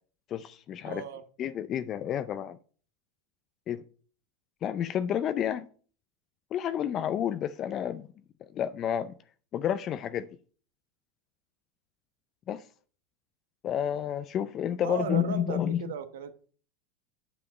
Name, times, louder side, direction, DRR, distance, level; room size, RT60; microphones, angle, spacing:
voice 1, 0.3-1.0 1.4-2.6 3.7-3.8 4.6-5.7 6.5-8.1 8.5-9.1 9.5-10.3 12.5-12.6 13.6-15.9, left 9 dB, 40° left, 0.5 m, -30 dB
voice 2, 0.8-1.2 14.8-16.5, right 8 dB, 75° right, 1.1 m, -36 dB
8.6 x 5.1 x 6.0 m
hypercardioid pair, 95°, 0 cm